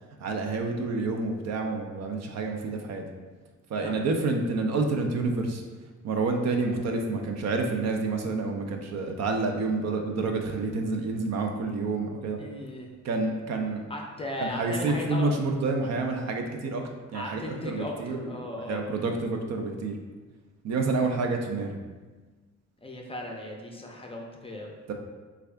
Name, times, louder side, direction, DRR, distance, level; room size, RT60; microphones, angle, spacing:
voice 1, 0.2-3.0 3.7-5.6 6.0-12.4 13.0-13.9 14.4-16.8 17.1-18.3 18.7-20.0 20.6-21.8 24.9-25.0, right 3 dB, 60° right, 3 dB, 0.5 m, -28 dB
voice 2, 12.4-12.9 13.9-15.3 17.1-18.8 22.8-24.7, left 1 dB, 20° left, 0 dB, 0.5 m, -36 dB
3.4 x 2.4 x 3.3 m, 1.3 s
cardioid pair, 90°, 30 cm